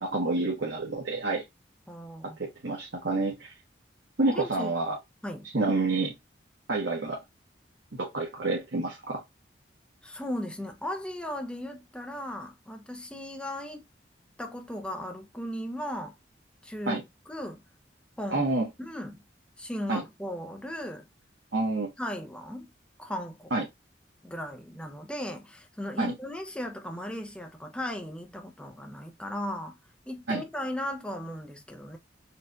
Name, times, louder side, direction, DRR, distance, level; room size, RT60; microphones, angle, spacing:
voice 1, 0.0-1.4 2.2-3.5 4.2-5.0 5.4-6.1 6.7-7.2 8.0-9.2 16.9-17.0 18.3-18.7 19.9-20.0 21.5-21.9 23.5-23.6 26.0-26.1 30.3-30.4, right 2 dB, 80° right, 1.0 m, -28 dB
voice 2, 1.9-2.4 4.3-4.7 5.2-5.5 10.0-13.8 14.4-16.2 16.6-17.6 18.2-18.4 18.8-19.2 19.6-21.0 22.0-22.7 23.0-23.5 24.2-29.8 30.1-32.0, left 1 dB, 5° left, 0.6 m, -36 dB
4.4 x 2.3 x 2.5 m
head